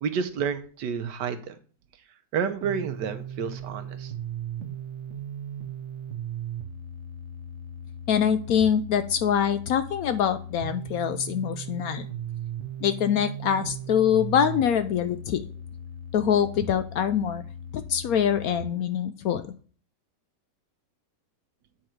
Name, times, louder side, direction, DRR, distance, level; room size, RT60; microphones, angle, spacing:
voice 1, 0.0-1.5 2.3-4.1, right 6 dB, 80° right, 8 dB, 1.4 m, -30 dB
sound 1, 2.6-18.6, right 5 dB, 55° right, 0.8 m, -37 dB
voice 2, 8.1-12.1 12.8-15.4 16.1-17.4 17.7-19.4, left 8 dB, 70° left, 10 dB, 0.9 m, -24 dB
8.5 x 3.8 x 4.4 m, 0.41 s
omnidirectional pair, 1.9 m